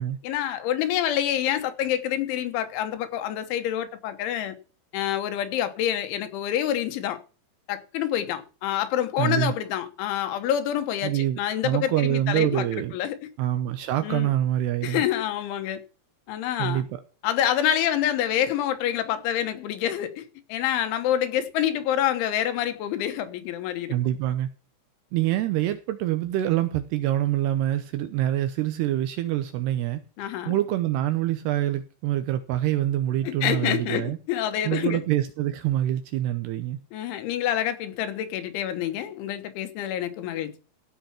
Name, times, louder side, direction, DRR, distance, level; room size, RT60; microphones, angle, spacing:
voice 1, 0.2-4.6 4.9-7.2 7.7-12.7 12.9-13.2 14.0-14.3 14.8-15.8 16.3-16.8 17.2-20.3 20.5-23.9 30.2-30.6 33.2-35.0 36.9-40.6, left 11 dB, 85° left, 3.7 m, -27 dB
voice 2, 9.2-9.5 11.0-13.0 13.4-15.0 16.6-16.9 23.9-24.5 25.1-34.2 34.6-36.8, right 13 dB, 75° right, 2.6 m, -26 dB
16.0 x 5.7 x 5.8 m
omnidirectional pair, 5.3 m